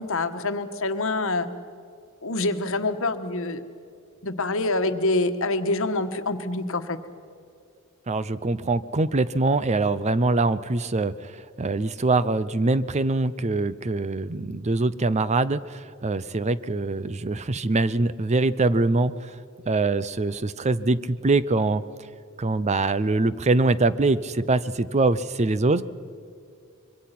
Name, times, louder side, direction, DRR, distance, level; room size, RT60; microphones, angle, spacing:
voice 1, 0.0-1.5 2.2-3.6 4.2-7.0, left 2 dB, 70° left, 9 dB, 1.4 m, -26 dB
voice 2, 8.1-19.3 19.7-21.8 22.4-25.8, right 3 dB, 30° right, 15 dB, 0.6 m, -23 dB
25.5 x 23.5 x 6.0 m, 2.4 s
head